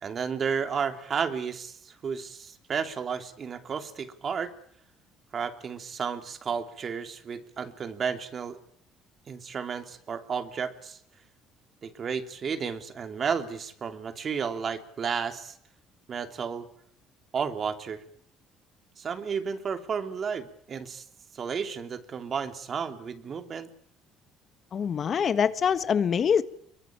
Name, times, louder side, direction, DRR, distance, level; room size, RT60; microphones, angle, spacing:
voice 1, 0.0-4.5 5.3-8.6 9.3-11.0 11.8-15.5 16.1-16.7 17.3-18.0 19.0-21.0 21.3-23.7, right 6 dB, 40° right, 3.0 m, -32 dB
voice 2, 24.7-26.4, left 7 dB, 45° left, 1.5 m, -24 dB
23.0 x 23.0 x 8.9 m
cardioid pair, 95°, 0 cm